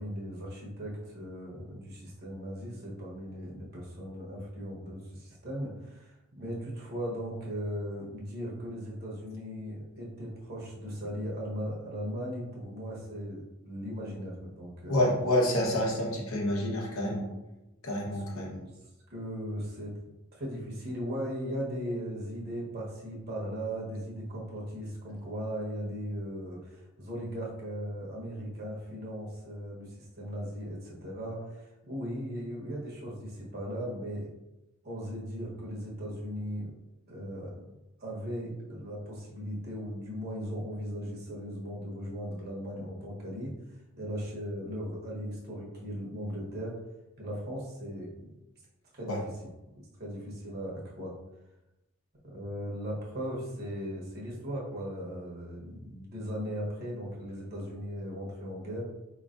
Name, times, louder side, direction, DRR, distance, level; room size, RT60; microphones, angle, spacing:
voice 1, 0.0-15.0 17.9-18.7 19.1-19.9 20.3-34.3 34.8-36.7 37.1-37.6 38.0-43.5 44.0-46.8 47.2-48.3 48.9-49.2 49.7-51.1 52.2-58.8, equal, 50° right, -4 dB, 1.1 m, -38 dB
voice 2, 14.9-17.3 17.8-18.6 49.1-49.2, left 1 dB, 80° left, -2 dB, 1.1 m, -28 dB
4.7 x 3.2 x 2.5 m, 0.98 s
head